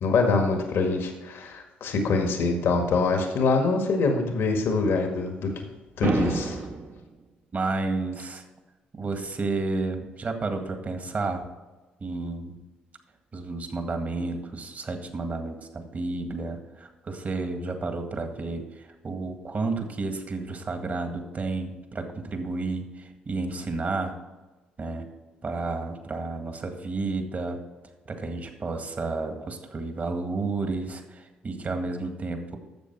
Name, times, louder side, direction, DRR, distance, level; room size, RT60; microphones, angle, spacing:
voice 1, 0.0-5.7 6.0-6.6, left 3 dB, 70° left, 4 dB, 1.7 m, -24 dB
sound 1, 6.0-7.0, right 3 dB, 60° right, 1.4 m, -28 dB
voice 2, 7.5-8.4 8.9-11.4 12.0-12.6 13.3-24.1 24.8-25.1 25.4-27.6 28.1-32.6, right 3 dB, 40° right, 5 dB, 1.9 m, -31 dB
11.5 x 7.3 x 4.7 m, 1.2 s
supercardioid pair, 60°, 4 cm